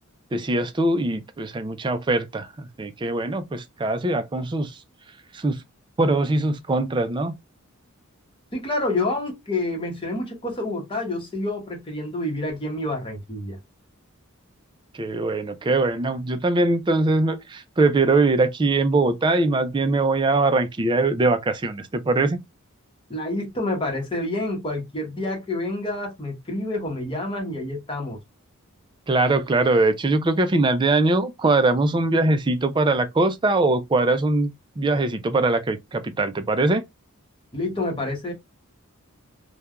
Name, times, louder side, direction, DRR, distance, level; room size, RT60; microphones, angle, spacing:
voice 1, 0.3-4.8 5.3-5.6 6.0-7.3 14.9-22.4 29.1-34.5 34.8-36.8, right 2 dB, 20° right, 0.4 m, -22 dB
voice 2, 8.5-13.6 23.1-28.2 37.5-38.3, left 2 dB, 25° left, 0.9 m, -28 dB
3.2 x 2.2 x 2.3 m
head